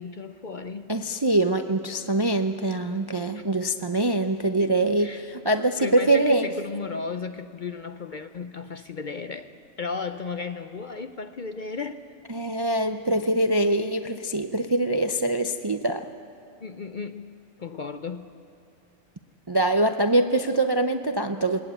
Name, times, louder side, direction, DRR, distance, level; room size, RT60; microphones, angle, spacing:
voice 1, 0.0-0.9 3.3-3.4 4.6-4.7 5.0-5.3 5.8-12.1 16.6-17.3 17.6-18.4, left 4 dB, 50° left, 0.6 m, -35 dB
voice 2, 0.9-6.5 12.3-16.1 19.5-21.6, right 2 dB, 30° right, 0.4 m, -24 dB
21.5 x 19.5 x 8.9 m
omnidirectional pair, 1.4 m